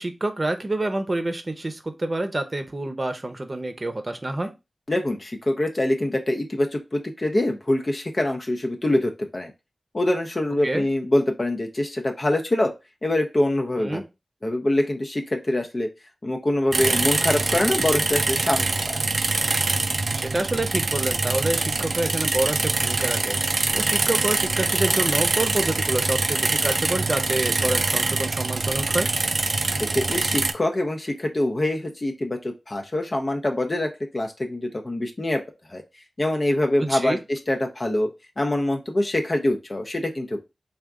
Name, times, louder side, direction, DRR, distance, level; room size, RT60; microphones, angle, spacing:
voice 1, 0.0-4.5 10.6-10.9 13.8-14.0 20.1-29.1 36.9-37.2, right 2 dB, 40° right, 8 dB, 0.7 m, -27 dB
voice 2, 4.9-9.5 9.9-12.7 13.0-14.0 14.4-15.9 16.2-19.0 29.9-35.4 35.7-35.8 36.2-38.1 38.4-40.4, left 1 dB, 40° left, 3 dB, 0.6 m, -24 dB
sound 1, 16.7-30.5, right 3 dB, 70° right, 0.4 m, -24 dB
3.5 x 2.4 x 3.6 m, 0.25 s
wide cardioid pair, 55°, 0 cm